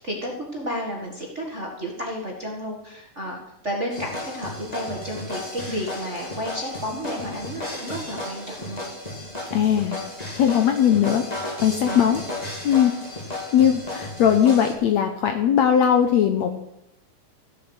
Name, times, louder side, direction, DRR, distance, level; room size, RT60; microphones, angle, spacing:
voice 1, 0.0-3.4 3.6-8.8 11.8-12.1, equal, 30° right, -1 dB, 1.6 m, -32 dB
sound 1, 3.9-14.7, left 1 dB, 15° left, 1.8 m, -34 dB
voice 2, 9.5-10.0 10.4-11.2 11.6-12.2 12.6-13.0 13.5-16.6, left 9 dB, 70° left, 6 dB, 1.7 m, -19 dB
15.0 x 7.1 x 8.0 m, 0.81 s
omnidirectional pair, 4.0 m